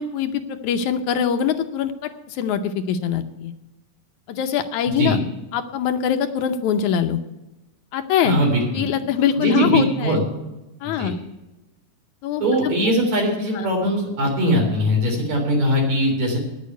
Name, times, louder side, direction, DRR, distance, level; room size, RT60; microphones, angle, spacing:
voice 1, 0.0-3.5 4.3-5.2 5.5-7.2 7.9-8.4 8.7-10.2 10.8-11.1 12.2-12.7 13.5-13.7, left 8 dB, 75° left, 7 dB, 1.9 m, -23 dB
voice 2, 8.2-8.9 9.4-10.2 11.0-11.1 12.4-16.4, equal, 55° right, 0 dB, 4.7 m, -20 dB
9.9 x 8.4 x 9.2 m, 1.0 s
omnidirectional pair, 3.8 m